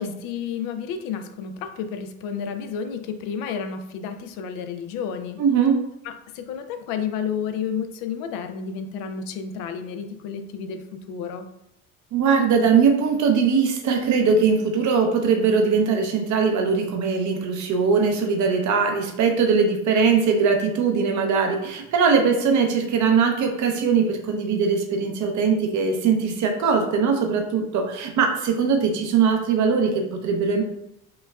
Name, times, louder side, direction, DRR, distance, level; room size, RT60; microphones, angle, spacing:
voice 1, 0.0-5.4 6.0-11.5, left 7 dB, 70° left, 7 dB, 0.5 m, -31 dB
voice 2, 5.4-5.8 12.1-30.6, right 5 dB, 55° right, 3 dB, 0.8 m, -21 dB
5.2 x 2.3 x 2.3 m, 0.81 s
supercardioid pair, 95°, 35 cm